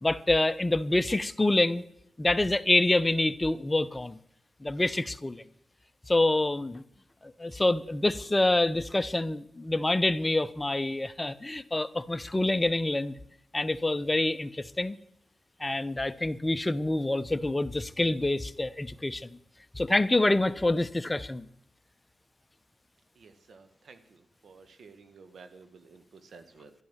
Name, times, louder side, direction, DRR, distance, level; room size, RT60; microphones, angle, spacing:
voice 1, 0.0-1.8 2.2-4.2 4.6-5.4 6.1-6.8 7.2-13.1 13.5-15.0 15.6-19.4 19.7-21.5, left 2 dB, 25° left, 0.9 m, -26 dB
voice 2, 23.1-26.7, right 4 dB, 70° right, 1.5 m, -53 dB
12.0 x 11.0 x 7.5 m
supercardioid pair, 40°, 0 cm